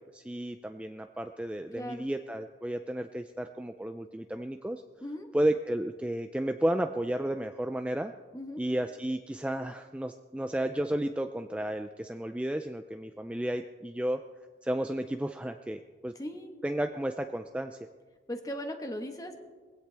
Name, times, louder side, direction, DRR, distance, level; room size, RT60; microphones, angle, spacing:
voice 1, 0.1-4.8 5.3-8.1 8.6-14.2 14.6-16.1 16.6-17.8, right 1 dB, 5° right, 6 dB, 0.4 m, -32 dB
voice 2, 1.7-2.1 5.0-5.3 8.3-8.6 16.1-16.5 18.3-19.4, equal, 20° left, 5 dB, 1.3 m, -38 dB
21.5 x 16.5 x 3.4 m, 1.4 s
head